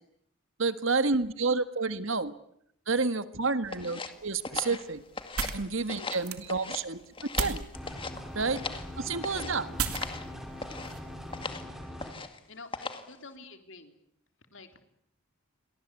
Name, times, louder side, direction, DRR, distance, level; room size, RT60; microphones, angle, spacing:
voice 1, 0.6-2.3 2.9-5.0 5.5-7.0 7.4-7.7 8.3-8.7 9.0-9.8, right 4 dB, 65° right, 11 dB, 1.7 m, -29 dB
sound 1, 3.7-5.6 5.9-6.8 7.1-8.9 9.2-9.6 9.9-10.3 10.6-10.9 11.3-11.7 12.0-12.4 12.7-13.1, left 4 dB, 25° left, 2.1 m, -38 dB
sound 2, 4.1-11.6, right 5 dB, 90° right, 3.2 m, -38 dB
sound 3, 7.7-12.1, left 1 dB, ahead, 5.5 m, -42 dB
voice 2, 12.5-14.0 14.5-14.7, left 3 dB, 60° left, 7 dB, 3.6 m, -48 dB
29.5 x 23.5 x 8.4 m, 0.72 s
head